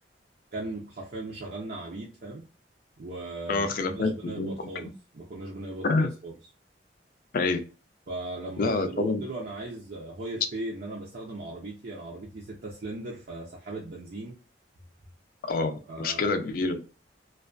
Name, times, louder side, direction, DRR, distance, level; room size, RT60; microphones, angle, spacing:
voice 1, 0.5-2.4 3.0-4.9 5.1-6.3 8.1-14.4 15.9-16.3, right 2 dB, 60° right, -3 dB, 0.5 m, -38 dB
voice 2, 3.5-4.9 5.8-6.1 7.3-7.6 8.6-9.2 15.4-16.8, left 3 dB, 50° left, 7 dB, 0.4 m, -27 dB
2.3 x 2.2 x 2.4 m, 0.34 s
head